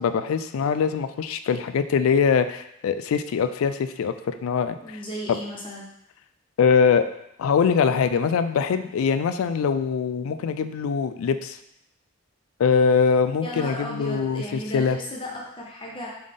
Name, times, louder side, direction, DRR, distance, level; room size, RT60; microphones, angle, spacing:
voice 1, 0.0-5.0 5.3-5.4 6.6-7.1 7.4-11.6 12.6-15.0, left 6 dB, 90° left, 11 dB, 0.3 m, -23 dB
voice 2, 4.8-5.9 13.4-16.1, equal, 25° left, -2 dB, 0.5 m, -35 dB
3.7 x 3.4 x 3.6 m, 0.81 s
head